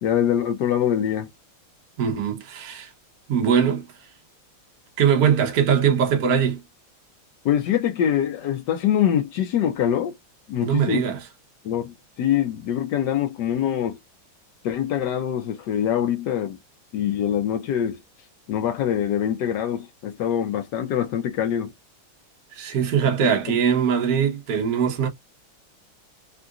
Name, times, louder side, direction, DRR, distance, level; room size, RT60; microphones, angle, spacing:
voice 1, 0.0-1.3 7.4-10.1 10.5-11.0 11.6-14.0 14.6-16.6 16.9-18.0 18.5-21.7 23.5-23.6, left 10 dB, 70° left, 1.0 m, -24 dB
voice 2, 2.0-2.9 3.3-3.8 5.0-6.6 10.6-11.3 22.5-25.1, right 7 dB, 55° right, 1.2 m, -21 dB
3.7 x 2.4 x 2.4 m
omnidirectional pair, 2.3 m